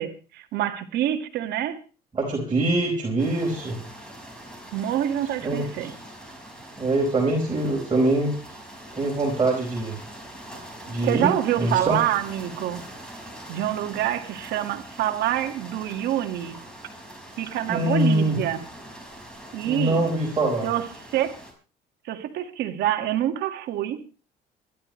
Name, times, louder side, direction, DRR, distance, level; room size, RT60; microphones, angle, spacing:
voice 1, 0.0-1.8 4.7-5.9 11.0-12.8 13.5-16.6 17.4-18.6 19.5-20.1 20.6-21.4 22.0-24.0, right 12 dB, 80° right, 1.9 m, -26 dB
voice 2, 2.1-3.8 5.4-5.6 6.8-8.3 8.9-10.0 10.8-11.3 11.6-12.0 17.7-18.4 19.7-20.7, right 2 dB, 25° right, 4.7 m, -23 dB
sound 1, 3.2-21.5, right 1 dB, 5° left, 5.5 m, -43 dB
25.5 x 11.5 x 3.2 m
cardioid pair, 110°, 17 cm